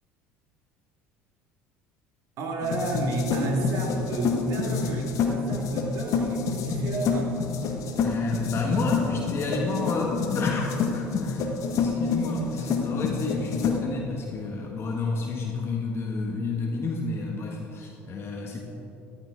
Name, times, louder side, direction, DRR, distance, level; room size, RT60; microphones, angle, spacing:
voice 1, 2.4-7.4, right 2 dB, 60° right, 1 dB, 2.1 m, -31 dB
sound 1, 2.6-13.8, left 5 dB, 60° left, 1.5 m, -28 dB
voice 2, 8.0-18.6, left 3 dB, 45° left, 0 dB, 1.6 m, -30 dB
14.0 x 11.5 x 3.8 m, 3.0 s
hypercardioid pair, 70°, 6 cm